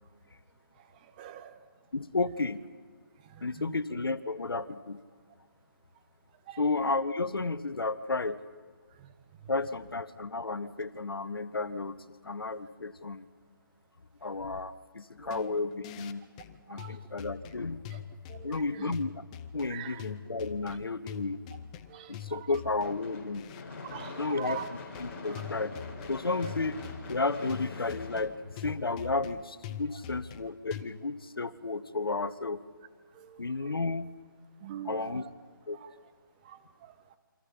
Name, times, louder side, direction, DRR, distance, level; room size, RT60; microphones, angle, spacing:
voice 1, 1.2-1.6 3.3-3.8 6.5-6.6 9.0-9.1 15.2-15.4 16.7-17.0 17.9-18.0 18.3-18.9 19.7-20.0 21.9-22.4 23.8-24.6 33.1-33.5 34.6-35.3 35.8-35.9 36.4-36.9, right 10 dB, 20° right, 10 dB, 1.1 m, -43 dB
voice 2, 1.9-2.6 3.4-5.0 6.6-8.4 9.5-13.3 14.2-16.2 16.7-17.8 18.4-19.2 19.5-21.4 22.1-23.5 24.2-24.7 25.0-25.7 26.1-32.6 33.4-34.1 34.8-35.2 35.7-35.8, left 3 dB, 85° left, 14 dB, 1.4 m, -32 dB
sound 1, 15.3-30.8, left 9 dB, 20° left, 0.8 m, -44 dB
Gunshot gunfire / Fireworks, 22.8-29.1, left 3 dB, 35° left, 5.3 m, -44 dB
28.0 x 25.5 x 5.7 m, 1.5 s
figure-of-eight pair, 155°, 12 cm